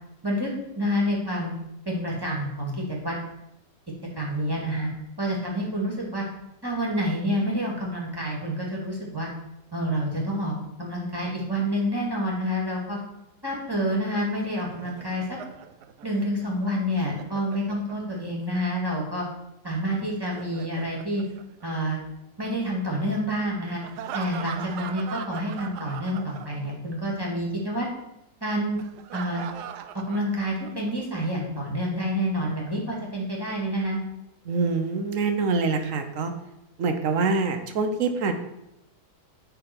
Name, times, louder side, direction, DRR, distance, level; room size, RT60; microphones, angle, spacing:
voice 1, 0.8-1.5 1.9-3.2 4.2-4.9 5.2-6.2 6.6-9.3 9.7-13.0 13.4-15.4 16.0-19.3 19.6-21.2 21.6-22.0 22.4-23.8 24.1-27.9 28.4-28.8 29.1-29.4 30.1-34.0, equal, 15° right, -3 dB, 1.9 m, -28 dB
Laughter, 14.2-18.3 20.0-22.1 23.8-26.9 27.1-27.3 28.8-30.9, right 8 dB, 80° right, 1.2 m, -40 dB
voice 2, 34.5-36.3 36.8-38.3, right 4 dB, 60° right, 7 dB, 1.1 m, -25 dB
9.2 x 4.0 x 5.9 m, 0.87 s
omnidirectional pair, 1.7 m